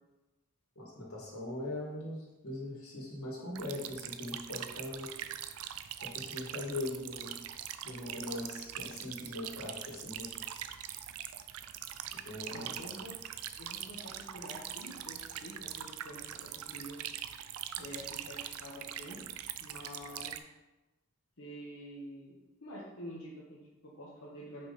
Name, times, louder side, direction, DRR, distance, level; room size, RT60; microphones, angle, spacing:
voice 1, 0.8-5.1 6.0-7.4 7.8-10.3 12.3-12.7, left 1 dB, 90° left, -4 dB, 2.3 m, -40 dB
sound 1, 3.6-20.4, right 10 dB, 85° right, 0.4 m, -43 dB
voice 2, 12.4-13.1 13.6-17.0 17.8-19.2 19.6-20.3 21.4-22.3 22.6-24.7, equal, 70° left, -7 dB, 1.2 m, -47 dB
5.5 x 5.3 x 4.2 m, 1.1 s
head